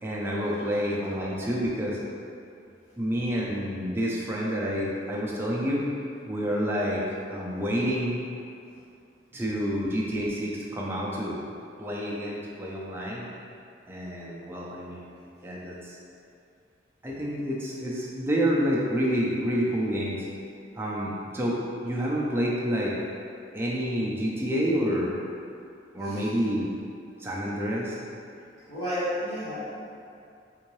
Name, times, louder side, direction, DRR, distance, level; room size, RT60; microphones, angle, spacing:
voice 1, 0.0-2.0 3.0-5.9 6.3-7.0 7.3-8.2 9.3-11.4 11.8-13.3 13.9-15.1 15.4-16.0 17.0-20.3 20.8-21.6 21.8-22.9 23.5-25.1 25.9-26.7 27.2-28.0, equal, 10° right, -5 dB, 0.4 m, -28 dB
voice 2, 28.7-29.7, equal, 55° left, -17 dB, 1.4 m, -32 dB
3.7 x 2.6 x 3.0 m, 2.5 s
head